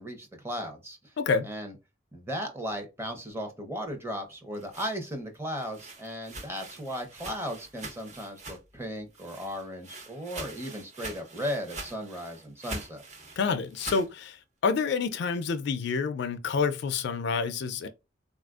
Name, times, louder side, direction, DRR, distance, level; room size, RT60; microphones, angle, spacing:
voice 1, 0.0-1.1 1.4-1.7 2.1-13.0, equal, 15° right, 0.7 m, -36 dB
voice 2, 1.2-1.5 13.4-17.9, left 5 dB, 60° left, 0.3 m, -28 dB
sound 1, 4.3-8.8 9.1-14.1, right 2 dB, 40° right, 0.9 m, -43 dB
3.9 x 2.4 x 2.3 m
head